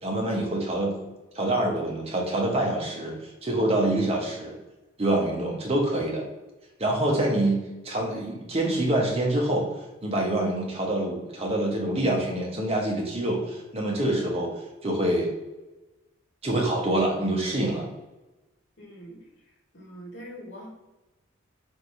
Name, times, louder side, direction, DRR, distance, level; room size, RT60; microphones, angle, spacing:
voice 1, 0.0-0.9 1.3-4.5 5.0-6.2 6.8-9.7 10.0-14.5 14.8-15.3 16.4-17.9, right 1 dB, 30° right, -1 dB, 0.9 m, -26 dB
voice 2, 18.8-19.2 19.5-20.7, equal, 60° left, -2 dB, 1.2 m, -43 dB
3.3 x 2.6 x 4.3 m, 1.1 s
head